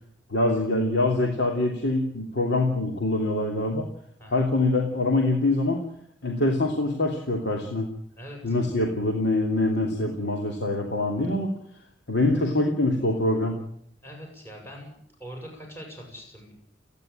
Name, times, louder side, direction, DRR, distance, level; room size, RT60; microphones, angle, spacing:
voice 1, 0.3-3.8 4.3-5.8 6.2-7.9 8.4-11.5 12.1-13.6, left 2 dB, 65° left, 1 dB, 3.0 m, -24 dB
voice 2, 8.2-8.5 14.0-14.9 15.2-16.5, equal, 15° left, 0 dB, 7.7 m, -42 dB
29.5 x 10.5 x 8.9 m, 0.67 s
head